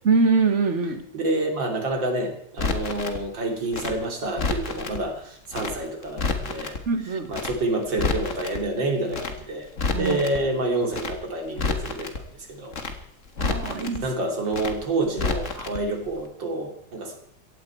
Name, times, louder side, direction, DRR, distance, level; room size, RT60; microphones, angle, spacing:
voice 1, 0.0-1.0 6.9-7.3 9.9-10.2 13.4-14.0, right 4 dB, 40° right, 8 dB, 1.6 m, -23 dB
voice 2, 1.1-6.7 7.0-9.7 10.0-12.2 12.5-12.7 14.0-17.2, right 2 dB, 85° right, 3 dB, 3.7 m, -28 dB
Crackle, 2.6-3.2 3.7-5.0 5.5-5.8 6.0-6.8 7.3-7.6 7.8-8.6 9.1-9.4 9.7-10.4 10.9-11.2 11.5-12.2 12.7-13.0 13.3-14.0 14.5-14.8 15.1-15.8 16.0-16.2, left 4 dB, 45° left, 1.8 m, -29 dB
17.0 x 15.5 x 4.6 m, 0.67 s
omnidirectional pair, 2.0 m